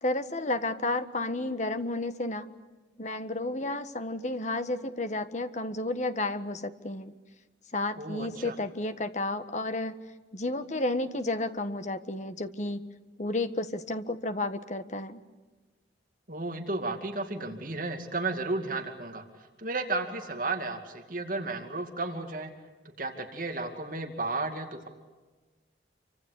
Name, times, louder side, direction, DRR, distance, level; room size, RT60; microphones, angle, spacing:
voice 1, 0.0-2.5 3.0-7.1 7.7-9.9 10.3-12.8 13.2-15.2, left 2 dB, 40° left, 9 dB, 1.5 m, -32 dB
voice 2, 8.0-8.5 16.3-19.2 19.6-22.5 23.0-24.9, right 3 dB, 45° right, 5 dB, 2.5 m, -33 dB
28.0 x 25.0 x 8.3 m, 1.3 s
head